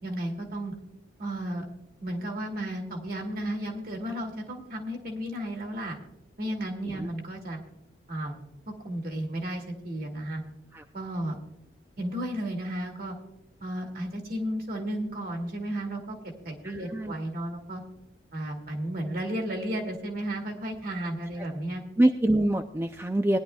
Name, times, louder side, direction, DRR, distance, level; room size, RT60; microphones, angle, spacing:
voice 1, 0.0-0.7 1.2-1.7 2.0-6.0 6.4-7.6 8.1-8.4 8.7-10.4 10.9-11.4 12.0-13.2 13.6-16.2 16.4-17.8 18.3-21.8, right 1 dB, 50° right, 2 dB, 2.1 m, -33 dB
voice 2, 16.6-17.1 22.0-23.4, right 1 dB, 10° right, 6 dB, 0.4 m, -25 dB
20.0 x 10.5 x 2.3 m, 0.91 s
head